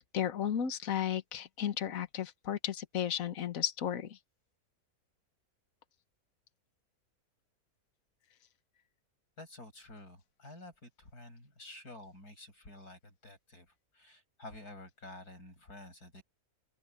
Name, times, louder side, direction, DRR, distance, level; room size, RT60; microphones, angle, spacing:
voice 1, 0.1-4.2, left 9 dB, 65° left, 1.5 m, -34 dB
voice 2, 9.4-13.7 13.9-16.2, left 2 dB, 85° left, 8.7 m, -50 dB
open air
omnidirectional pair, 1.6 m